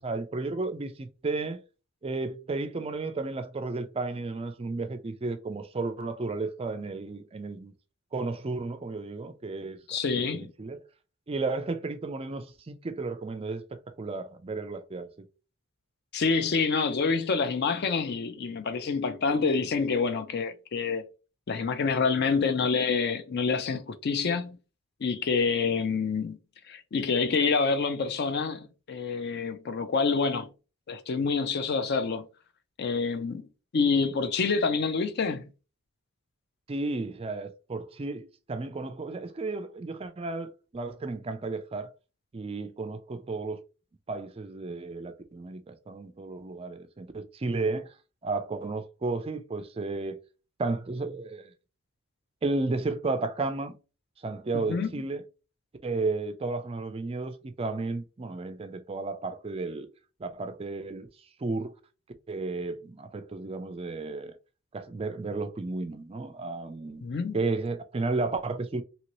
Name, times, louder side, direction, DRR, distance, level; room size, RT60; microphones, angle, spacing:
voice 1, 0.0-1.6 2.0-7.7 8.1-9.8 10.2-10.8 11.3-15.3 36.7-41.9 42.3-43.6 44.1-47.9 48.2-50.2 50.6-51.5 52.4-53.8 54.2-55.2 55.8-59.9 60.2-61.1 61.4-61.7 62.3-64.4 64.7-67.0 67.3-68.8, right 3 dB, 25° right, 0.3 m, -33 dB
voice 2, 9.9-10.5 16.1-21.0 21.5-24.6 25.0-26.4 26.7-30.5 30.9-32.3 32.8-33.5 33.7-35.4 54.5-54.9 67.0-67.4, left 4 dB, 50° left, 0.4 m, -27 dB
2.9 x 2.7 x 3.0 m
head